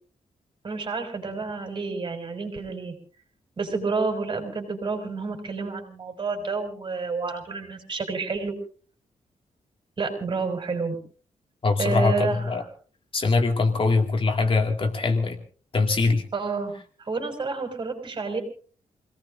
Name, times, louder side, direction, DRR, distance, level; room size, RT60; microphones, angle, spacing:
voice 1, 0.6-2.9 3.6-8.6 10.0-11.0 11.8-12.5 16.3-16.7 17.0-18.4, right 4 dB, 40° right, 4 dB, 5.6 m, -29 dB
voice 2, 11.6-12.6 13.1-15.4 15.7-16.2, left 3 dB, 45° left, 4 dB, 2.3 m, -22 dB
28.5 x 18.5 x 2.7 m, 0.41 s
wide cardioid pair, 120°, 13 cm